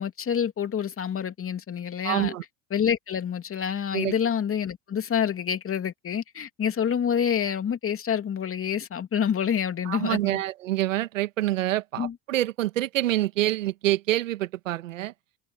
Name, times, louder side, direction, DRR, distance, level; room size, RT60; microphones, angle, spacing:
voice 1, 0.0-2.3 2.7-10.4 12.0-12.1, left 8 dB, 35° left, 2.9 m, -27 dB
voice 2, 2.0-2.4 3.9-4.1 9.8-15.1, right 15 dB, 90° right, 1.6 m, -26 dB
hypercardioid pair, 80°, 38 cm